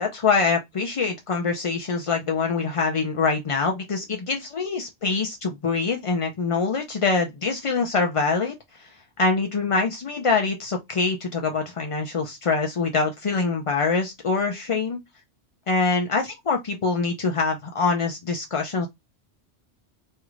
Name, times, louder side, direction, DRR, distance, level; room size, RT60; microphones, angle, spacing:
voice 1, 0.0-15.0 15.7-18.9, left 4 dB, 55° left, 0.3 m, -24 dB
3.2 x 2.5 x 3.0 m
omnidirectional pair, 1.2 m